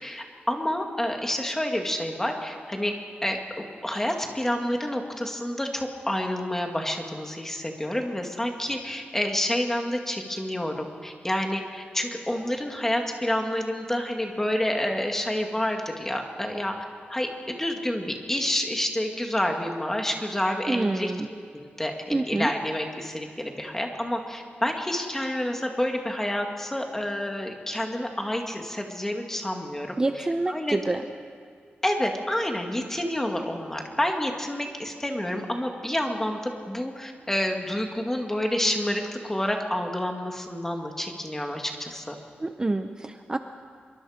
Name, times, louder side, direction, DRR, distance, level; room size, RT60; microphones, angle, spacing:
voice 1, 0.0-2.9 3.2-3.4 3.8-16.7 17.1-21.1 21.5-30.8 31.8-36.4 36.7-42.2, left 1 dB, 10° left, 3 dB, 2.0 m, -29 dB
voice 2, 20.7-21.3 22.1-22.5 30.0-31.0 42.4-43.4, right 2 dB, 20° right, 7 dB, 0.6 m, -27 dB
25.0 x 23.0 x 5.1 m, 2.2 s
wide cardioid pair, 150°, 4 cm